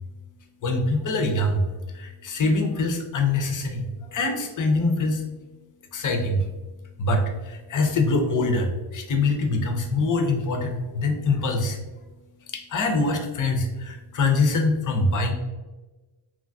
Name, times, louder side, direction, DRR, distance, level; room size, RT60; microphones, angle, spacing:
voice 1, 0.6-1.7 1.9-5.2 5.9-6.5 7.0-11.8 12.5-15.3, left 2 dB, 40° left, 4 dB, 0.6 m, -24 dB
3.0 x 2.3 x 2.6 m, 1.2 s
cardioid pair, 100°, 49 cm